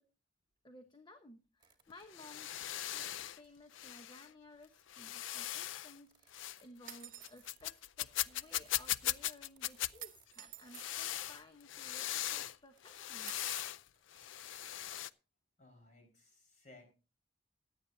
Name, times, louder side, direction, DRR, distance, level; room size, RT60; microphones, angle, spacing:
voice 1, 0.6-13.3, left 1 dB, 25° left, 6 dB, 1.0 m, -58 dB
sound 1, 1.6-1.8 2.7-2.9 3.6-4.0 4.9-5.3 6.0-7.6 8.0-8.9 9.3-12.5 12.8-15.1, right 7 dB, 25° right, 1.8 m, -66 dB
sound 2, 1.9-3.4 3.7-4.3 4.9-6.0 6.3-6.6 6.8-9.9 10.7-12.6 12.8-13.8 14.1-15.1, left 13 dB, 85° left, 0.5 m, -39 dB
sound 3, 6.9-7.4 10.0-10.9 13.3-13.8, right 13 dB, 45° right, 0.8 m, -50 dB
voice 2, 15.6-16.9, left 2 dB, 40° left, 4 dB, 5.1 m, -60 dB
17.0 x 11.0 x 2.7 m, 0.32 s
head